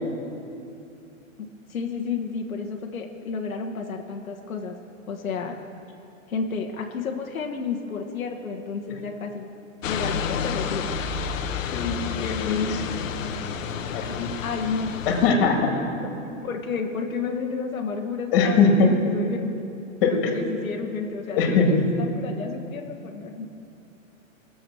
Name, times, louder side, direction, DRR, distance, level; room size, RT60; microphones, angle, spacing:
voice 1, 1.4-4.8 5.1-5.6 6.3-9.5 9.8-10.9 13.9-14.9 16.1-19.6 20.0-23.5, left 5 dB, 90° left, 2 dB, 1.3 m, -31 dB
sound 1, 9.8-15.3, left 6 dB, 70° left, 1.0 m, -30 dB
voice 2, 11.6-12.8 13.9-14.3 15.1-15.6 18.3-18.9 20.0-20.4 21.4-21.7, left 5 dB, 40° left, 2 dB, 2.2 m, -21 dB
19.0 x 7.2 x 6.2 m, 2.7 s
hypercardioid pair, 145°, 40 cm